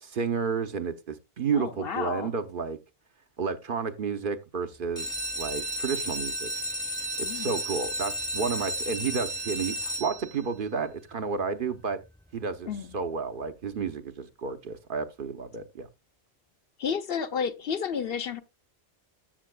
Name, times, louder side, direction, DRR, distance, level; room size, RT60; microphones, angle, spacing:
voice 1, 0.0-2.8 3.4-6.5 7.3-12.0 12.3-15.9, right 5 dB, 55° right, 0.9 m, -31 dB
voice 2, 1.5-2.3 7.2-7.6 12.7-13.0 16.8-18.4, left 7 dB, 65° left, 1.0 m, -31 dB
sound 1, 4.8-10.6 11.2-11.7 12.1-12.2 12.4-12.5 12.9-13.1, right 1 dB, 5° left, 0.8 m, -33 dB
13.5 x 7.4 x 2.2 m
omnidirectional pair, 1.1 m